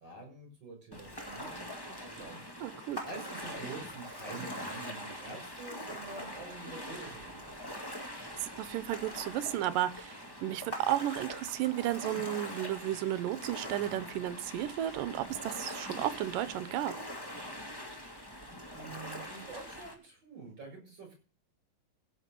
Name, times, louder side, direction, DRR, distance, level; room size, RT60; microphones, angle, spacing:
voice 1, 0.0-2.7 3.0-7.7 18.7-21.1, right 4 dB, 30° right, 3 dB, 7.1 m, -47 dB
Ocean, 0.9-19.9, equal, 20° left, 0.6 m, -43 dB
voice 2, 2.6-3.0 8.4-16.9, right 13 dB, 75° right, 15 dB, 2.3 m, -33 dB
15.5 x 6.1 x 6.7 m, 0.36 s
omnidirectional pair, 4.0 m